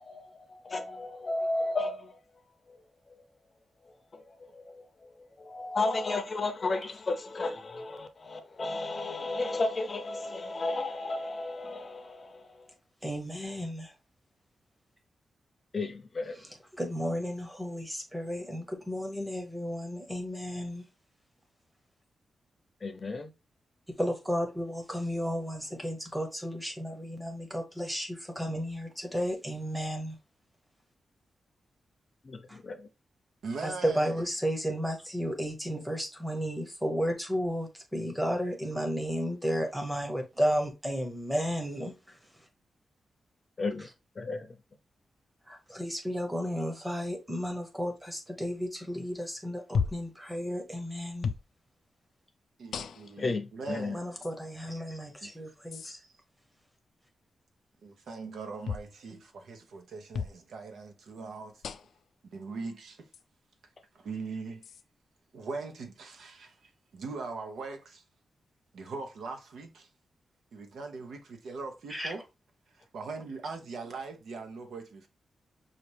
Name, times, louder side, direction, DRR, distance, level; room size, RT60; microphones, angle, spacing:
voice 1, 0.0-2.2 2.7-2.8 3.1-3.2 4.1-12.7 15.7-16.4 22.8-23.3 32.2-32.9 43.6-43.9 44.2-44.6 53.2-54.0, left 2 dB, 30° left, 0.6 m, -34 dB
voice 2, 13.0-13.9 16.4-20.9 24.0-30.2 32.5-32.6 33.6-42.5 45.5-51.3 53.9-56.0 71.9-72.1, equal, 5° right, 0.9 m, -33 dB
voice 3, 33.4-34.1 52.6-54.2 55.2-56.1 57.8-61.6 62.2-63.1 63.9-64.6 65.3-68.0 68.7-69.9 70.5-72.2 72.7-75.1, right 4 dB, 85° right, 0.9 m, -41 dB
sound 1, 49.7-50.1 51.2-51.5 52.7-53.2 54.2-54.3 55.7-55.9 58.6-58.9 60.1-60.4 61.6-62.0 63.1-63.2 64.6-64.8, left 6 dB, 85° left, 0.4 m, -33 dB
5.7 x 2.5 x 3.3 m
wide cardioid pair, 180°, 0 cm